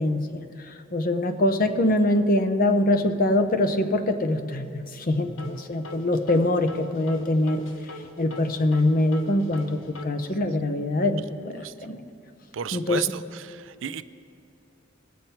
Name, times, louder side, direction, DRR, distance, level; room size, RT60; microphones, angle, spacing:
voice 1, 0.0-7.6 8.2-12.0 12.7-13.1, left 1 dB, 45° left, 7 dB, 0.8 m, -24 dB
sound 1, 5.1-10.1, left 1 dB, 75° left, 0.9 m, -42 dB
voice 2, 12.5-13.1 13.5-14.0, right 9 dB, 70° right, 14 dB, 0.4 m, -31 dB
21.0 x 7.4 x 4.3 m, 2.5 s
head